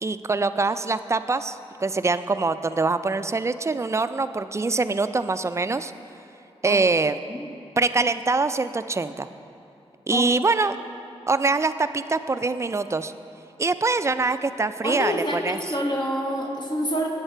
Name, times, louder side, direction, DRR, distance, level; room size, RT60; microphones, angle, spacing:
voice 1, 0.0-5.9 6.6-7.2 7.8-9.3 10.1-10.8 11.3-13.1 13.6-15.6, right 3 dB, 25° right, 12 dB, 0.4 m, -24 dB
voice 2, 14.8-17.1, equal, 40° left, 0 dB, 1.0 m, -27 dB
8.1 x 8.0 x 4.5 m, 2.8 s
cardioid pair, 50°, 11 cm